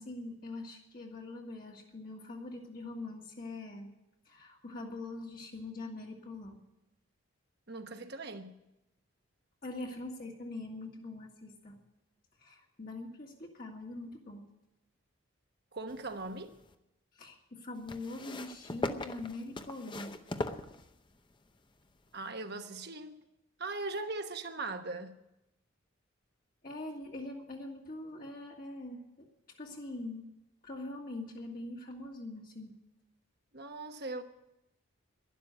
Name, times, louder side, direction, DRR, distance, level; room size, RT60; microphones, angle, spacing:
voice 1, 0.0-3.9 4.3-6.6 9.6-11.8 12.4-14.5 17.2-20.1 26.6-30.3 30.6-32.8, left 2 dB, 45° left, 1.9 m, -43 dB
voice 2, 7.7-8.6 15.7-16.5 22.1-23.2 23.6-25.2 33.5-34.2, right 3 dB, 50° right, 1.2 m, -39 dB
sound 1, 15.9-16.7 17.9-21.3 22.2-22.3, left 2 dB, 25° left, 0.7 m, -40 dB
12.0 x 11.5 x 8.8 m
head